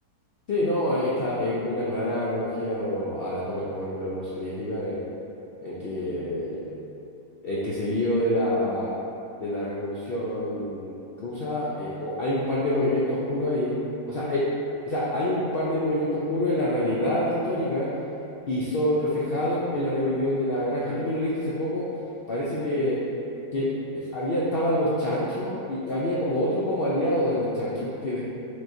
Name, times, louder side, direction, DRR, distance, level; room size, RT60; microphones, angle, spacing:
voice 1, 0.5-5.0 5.6-6.7 7.4-8.9 9.4-13.8 14.1-14.5 14.8-17.9 18.5-21.8 22.3-23.0 23.5-23.7 23.9-28.2, left 1 dB, 90° left, -7 dB, 0.5 m, -26 dB
6.3 x 3.0 x 2.6 m, 2.7 s
omnidirectional pair, 1.7 m